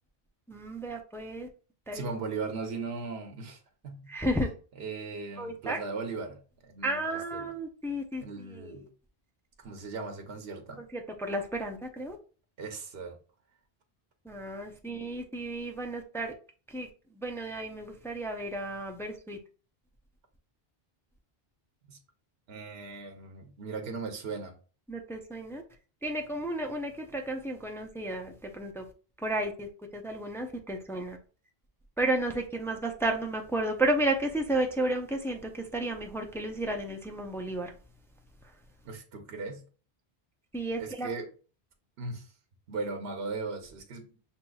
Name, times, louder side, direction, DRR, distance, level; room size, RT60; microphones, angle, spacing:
voice 1, 0.5-1.5 1.9-2.1 4.1-4.5 5.4-5.8 6.8-8.2 8.5-8.8 10.8-12.2 14.2-16.3 16.7-16.9 17.2-19.4 24.9-25.6 26.0-28.8 29.2-31.2 32.0-37.7 40.5-41.1, right 1 dB, 5° left, 0.4 m, -32 dB
voice 2, 1.9-4.1 4.8-7.5 8.2-8.9 9.6-10.8 12.6-13.2 14.9-15.0 21.9-22.0 22.5-24.5 38.8-39.6 40.8-41.3 42.0-42.3 42.7-44.2, right 4 dB, 75° right, 1.0 m, -38 dB
7.2 x 2.9 x 2.3 m
omnidirectional pair, 1.1 m